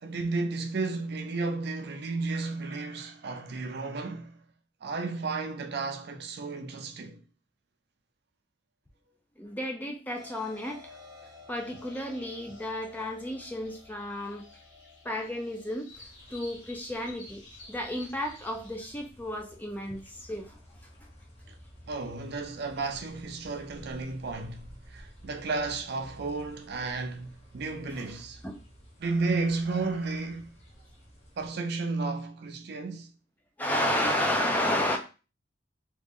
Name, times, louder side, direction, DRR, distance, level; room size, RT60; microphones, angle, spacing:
voice 1, 0.0-4.4 4.8-7.2 21.5-21.6 21.9-28.4 29.0-30.5 31.4-33.1, right 3 dB, 55° right, 0.4 m, -33 dB
voice 2, 9.4-11.0 11.5-14.5 15.0-15.9 16.3-17.4 17.7-20.6 27.9-28.1 28.4-28.6 33.6-35.0, left 1 dB, 10° left, 0.4 m, -32 dB
sound 1, 10.1-15.7, left 4 dB, 20° right, 0.8 m, -52 dB
sound 2, 11.5-18.9, left 2 dB, 70° left, 1.1 m, -52 dB
sound 3, 15.9-31.5, equal, 35° left, 1.1 m, -53 dB
3.1 x 2.4 x 3.4 m
head